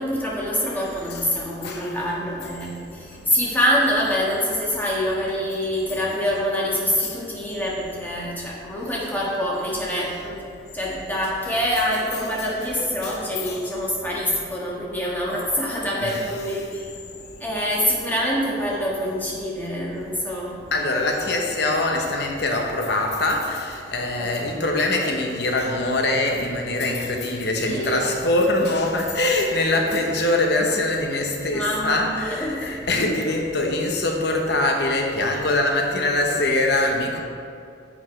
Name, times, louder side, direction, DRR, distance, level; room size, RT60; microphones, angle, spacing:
voice 1, 0.0-10.4 10.7-16.9 17.4-20.6 24.2-24.6 27.6-28.1 31.5-32.9, equal, 10° left, -5 dB, 1.5 m, -25 dB
voice 2, 1.6-2.0 3.3-3.4 7.0-7.1 13.0-13.3 16.0-16.1 20.7-37.2, left 2 dB, 60° left, 2 dB, 0.9 m, -23 dB
9.8 x 7.1 x 3.2 m, 2.4 s
head